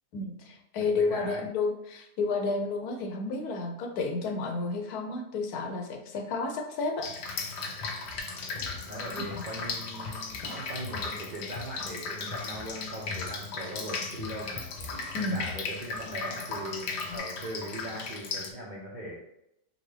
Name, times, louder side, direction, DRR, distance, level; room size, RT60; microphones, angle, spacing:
voice 1, 0.1-7.1 9.3-9.4 15.1-15.5, left 3 dB, 70° left, 4 dB, 1.1 m, -31 dB
voice 2, 1.0-1.4 8.8-14.7 15.2-19.2, right 1 dB, 50° right, -5 dB, 0.5 m, -40 dB
Drip, 7.0-18.5, left 4 dB, 90° left, 1.3 m, -37 dB
sound 1, 7.2-17.2, left 5 dB, 30° left, 1.0 m, -45 dB
4.1 x 3.9 x 3.3 m, 0.83 s
omnidirectional pair, 1.8 m